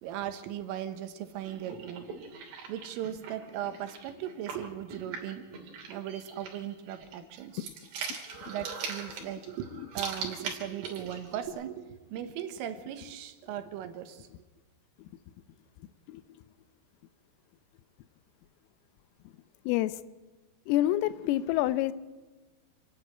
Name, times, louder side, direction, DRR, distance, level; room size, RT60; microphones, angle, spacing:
voice 1, 0.0-2.1 2.7-5.6 5.9-7.7 8.5-9.7 10.0-14.3, right 10 dB, 80° right, 8 dB, 3.9 m, -38 dB
sound 1, 1.4-11.5, right 5 dB, 60° right, 4.9 m, -41 dB
voice 2, 19.7-20.0 20.7-21.9, left 14 dB, 85° left, 15 dB, 3.4 m, -27 dB
28.5 x 10.5 x 9.3 m, 1.2 s
omnidirectional pair, 5.9 m